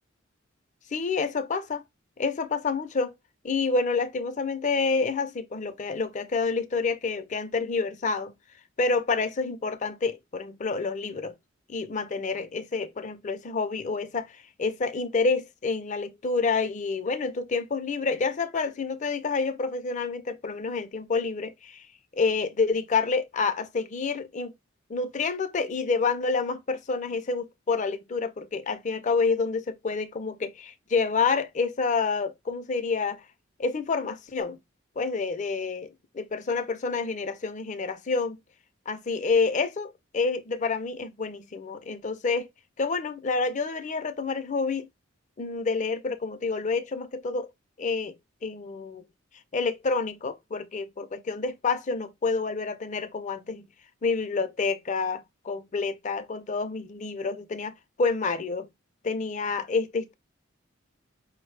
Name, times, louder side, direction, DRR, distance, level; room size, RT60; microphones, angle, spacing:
voice 1, 0.9-1.8 2.2-3.1 3.4-8.3 8.8-11.3 11.7-21.9 22.1-24.5 24.9-33.2 33.6-34.6 35.0-38.4 38.9-42.5 42.8-44.9 45.4-47.5 47.8-48.1 48.4-49.0 49.5-53.7 54.0-57.7 58.0-58.7 59.0-60.1, left 4 dB, 35° left, 0.4 m, -28 dB
5.0 x 2.1 x 3.2 m
head